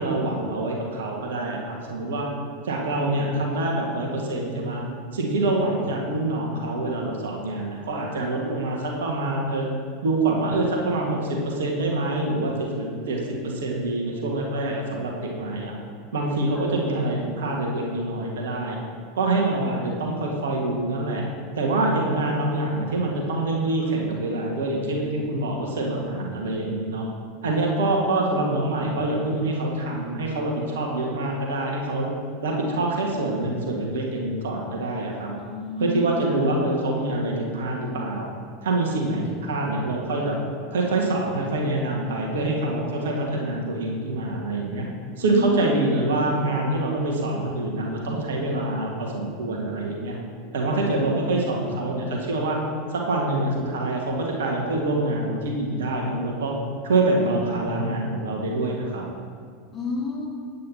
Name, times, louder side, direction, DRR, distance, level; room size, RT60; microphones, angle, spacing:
voice 1, 0.0-2.3 2.6-4.8 5.1-9.7 10.0-15.7 16.1-18.8 19.1-21.2 21.6-27.0 27.4-32.1 32.4-35.3 35.8-38.3 38.6-40.4 40.7-44.9 45.2-50.2 50.5-52.6 52.9-56.5 56.8-59.0, right 2 dB, 65° right, 0 dB, 1.5 m, -25 dB
voice 2, 35.4-36.1 45.2-45.7 59.7-60.3, left 4 dB, 25° left, -3 dB, 2.1 m, -30 dB
8.6 x 8.4 x 4.2 m, 2.2 s
figure-of-eight pair, 85°, 0 cm